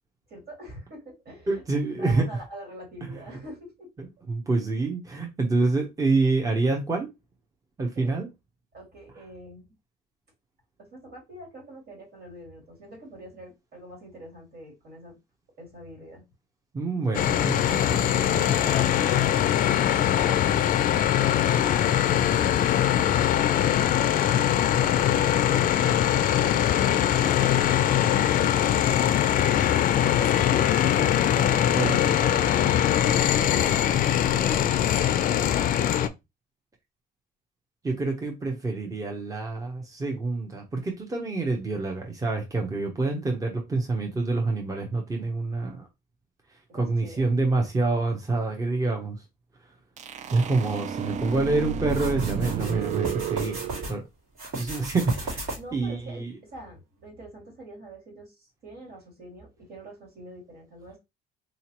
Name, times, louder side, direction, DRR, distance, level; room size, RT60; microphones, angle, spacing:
voice 1, 0.3-1.6 2.0-4.1 7.9-8.1 8.7-9.7 10.8-15.2 15.6-16.3 20.9-22.3 22.9-23.8 24.8-27.9 28.5-35.0 46.7-47.2 55.6-61.0, right 1 dB, 65° right, 2.3 m, -45 dB
voice 2, 1.5-2.2 3.0-3.1 4.3-7.1 7.8-8.3 16.7-19.0 31.7-32.0 37.8-45.9 46.7-49.2 50.3-53.6 53.9-54.0 54.5-56.3, right 3 dB, 20° right, 0.8 m, -27 dB
sound 1, 17.1-36.1, left 10 dB, 55° left, 0.4 m, -22 dB
sound 2, 50.0-53.9, right 7 dB, 45° right, 0.4 m, -31 dB
sound 3, 51.9-53.9 54.3-55.8, right 2 dB, 85° right, 2.4 m, -35 dB
3.9 x 2.8 x 2.9 m
cardioid pair, 110°, 17 cm